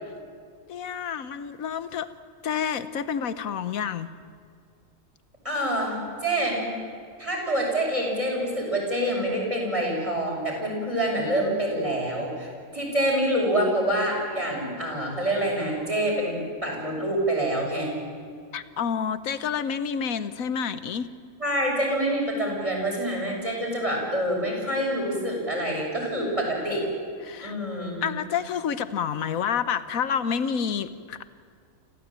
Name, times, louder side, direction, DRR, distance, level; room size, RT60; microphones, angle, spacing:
voice 1, 0.7-2.1 2.4-4.1 18.5-21.1 27.2-27.5 28.0-31.2, left 7 dB, 90° left, 13 dB, 1.4 m, -29 dB
voice 2, 5.4-6.7 7.2-18.0 21.4-26.9 27.4-28.1, right 1 dB, 25° right, -1 dB, 6.9 m, -26 dB
27.0 x 15.5 x 8.9 m, 2.2 s
omnidirectional pair, 1.4 m